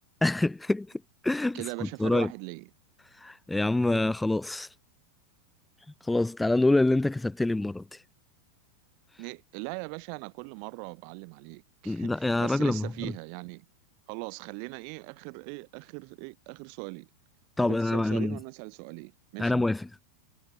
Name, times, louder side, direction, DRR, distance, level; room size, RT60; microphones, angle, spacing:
voice 1, 0.2-0.9 1.2-2.3 3.2-4.7 6.0-8.0 11.8-13.1 17.6-18.4 19.4-19.9, left 2 dB, 5° left, 1.4 m, -26 dB
voice 2, 1.5-2.7 9.2-13.6 14.1-17.1 17.6-19.6, right 40 dB or more, 45° right, 6.5 m, -40 dB
figure-of-eight pair, 90°, 0 cm